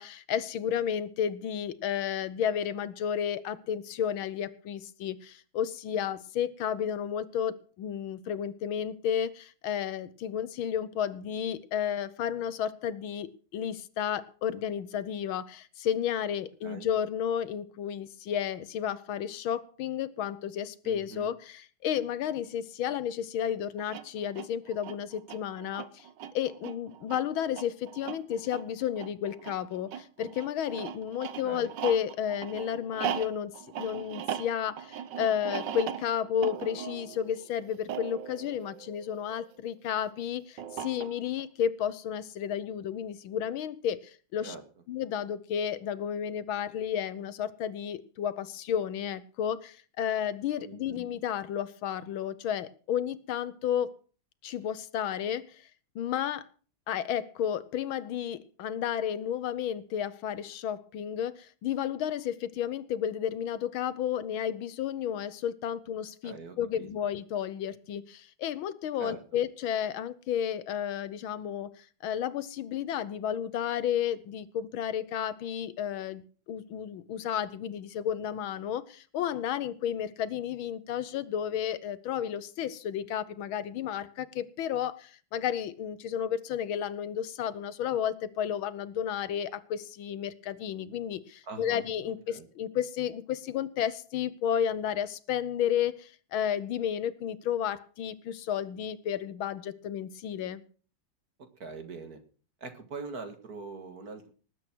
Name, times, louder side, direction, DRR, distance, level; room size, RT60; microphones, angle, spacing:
voice 1, 0.0-26.1 26.3-44.5 44.9-53.9 54.4-55.6 55.9-56.5 56.9-100.6, left 9 dB, 75° left, 15 dB, 1.6 m, -32 dB
voice 2, 20.8-21.3 31.4-31.7 44.4-44.6 50.6-51.0 66.2-66.9 69.0-69.2 91.4-91.9 92.3-92.5 101.6-102.2 102.6-104.3, right 4 dB, 45° right, 7 dB, 2.2 m, -42 dB
sound 1, 23.8-39.6 40.6-41.4, right 10 dB, 65° right, 1.4 m, -39 dB
19.5 x 8.3 x 6.1 m, 0.40 s
omnidirectional pair, 2.3 m